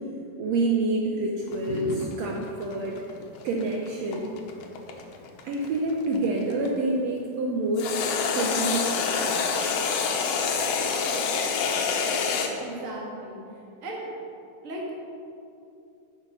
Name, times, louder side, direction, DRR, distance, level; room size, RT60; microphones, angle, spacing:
voice 1, 0.4-3.0 3.4-4.3 5.4-8.0 8.3-9.4, right 2 dB, 90° right, 0 dB, 1.4 m, -27 dB
sound 1, 1.5-6.7 7.8-12.5, left 5 dB, 80° left, 1.5 m, -27 dB
voice 2, 12.6-13.4 13.8-14.1 14.6-15.0, right 1 dB, 40° right, -3 dB, 1.1 m, -36 dB
9.8 x 6.6 x 5.4 m, 2.6 s
omnidirectional pair, 4.0 m